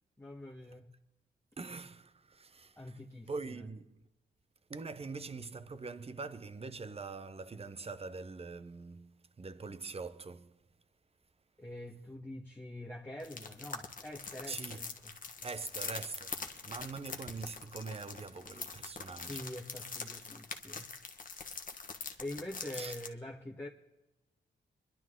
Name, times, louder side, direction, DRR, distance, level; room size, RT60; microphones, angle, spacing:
voice 1, 0.2-0.9 2.8-3.6 11.6-15.1 19.2-20.9 22.2-23.7, left 1 dB, 10° left, 1.4 m, -45 dB
voice 2, 1.6-3.0 3.3-4.1 4.7-10.6 14.5-14.9 15.4-19.4 22.7-23.0, right 4 dB, 30° right, 0.8 m, -43 dB
sound 1, 13.2-23.1, left 4 dB, 45° left, 1.3 m, -44 dB
25.0 x 11.5 x 3.8 m
wide cardioid pair, 110°, 19 cm